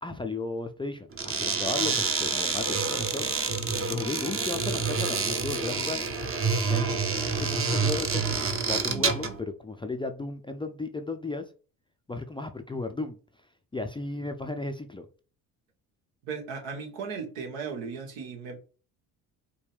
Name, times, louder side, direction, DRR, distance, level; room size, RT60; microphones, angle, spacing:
voice 1, 0.0-3.5 3.9-6.1 6.7-7.0 7.4-11.5 12.1-13.2 13.7-15.1, left 3 dB, 10° left, 0.4 m, -35 dB
sound 1, 1.1-9.4, right 5 dB, 30° right, 0.8 m, -28 dB
voice 2, 16.2-18.6, right 5 dB, 75° right, 1.3 m, -36 dB
4.9 x 2.2 x 3.5 m
hypercardioid pair, 65°, 46 cm